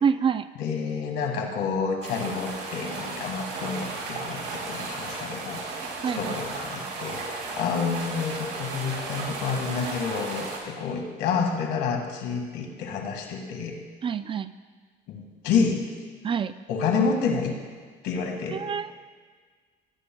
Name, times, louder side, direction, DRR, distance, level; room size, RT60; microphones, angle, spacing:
voice 1, 0.0-0.5 6.0-6.4 14.0-14.5 16.2-16.5 18.5-18.9, right 7 dB, 30° right, 13 dB, 0.3 m, -26 dB
voice 2, 0.6-5.6 6.2-13.8 15.1-15.8 16.7-17.6 18.0-18.6, left 5 dB, 85° left, 2 dB, 1.8 m, -29 dB
sound 1, 2.0-10.6, right 3 dB, 90° right, 2.9 m, -35 dB
19.0 x 10.0 x 2.3 m, 1.5 s
cardioid pair, 110°, 17 cm